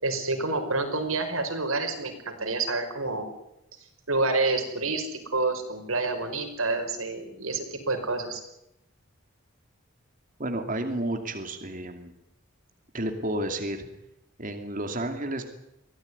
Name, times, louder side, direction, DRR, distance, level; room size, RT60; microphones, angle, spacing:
voice 1, 0.0-3.3 4.1-5.1 5.3-8.4, right 3 dB, 75° right, 5 dB, 5.4 m, -28 dB
voice 2, 10.4-12.1 12.9-13.9 14.4-15.4, right 1 dB, 40° right, 6 dB, 2.7 m, -31 dB
24.5 x 17.5 x 9.7 m, 0.85 s
head